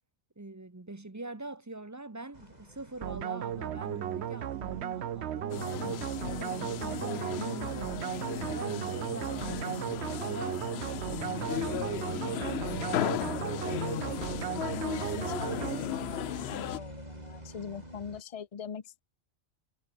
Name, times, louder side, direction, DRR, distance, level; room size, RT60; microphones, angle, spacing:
voice 1, 0.4-10.6 11.3-14.0, right 2 dB, 15° right, 1.0 m, -44 dB
sound 1, 2.3-18.2, right 1 dB, 35° right, 7.5 m, -48 dB
sound 2, 3.0-16.3, right 10 dB, 70° right, 1.0 m, -35 dB
sound 3, 5.5-16.8, left 12 dB, 70° left, 0.8 m, -36 dB
voice 2, 14.7-19.0, left 7 dB, 35° left, 0.8 m, -42 dB
omnidirectional pair, 1.2 m